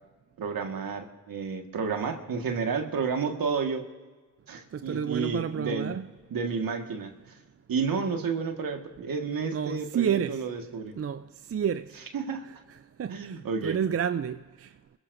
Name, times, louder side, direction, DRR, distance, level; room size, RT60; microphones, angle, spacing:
voice 1, 0.4-3.8 4.5-5.9 6.3-7.1 7.7-10.9 12.1-12.4 13.1-13.8, right 5 dB, 70° right, 1.8 m, -31 dB
voice 2, 4.7-6.1 9.5-10.4 11.0-11.2 11.5-11.9 13.0-14.7, right 8 dB, 40° right, 0.5 m, -30 dB
28.0 x 16.0 x 2.7 m
supercardioid pair, 40°, 36 cm